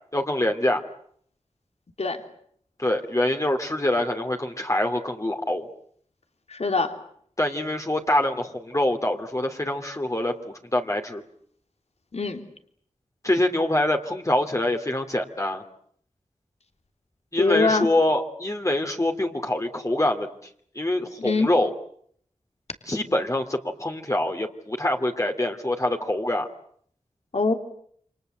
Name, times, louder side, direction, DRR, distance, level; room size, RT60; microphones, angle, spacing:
voice 1, 0.1-0.8 2.8-5.7 7.4-11.2 13.2-15.6 17.3-20.3 20.7-21.7 22.9-26.5, left 1 dB, 25° left, 3 dB, 2.8 m, -25 dB
voice 2, 6.5-6.9 12.1-12.4 17.4-17.9 21.2-21.5 27.3-27.5, left 3 dB, 60° left, 6 dB, 3.2 m, -23 dB
29.0 x 25.0 x 8.0 m, 0.65 s
wide cardioid pair, 55°, 12 cm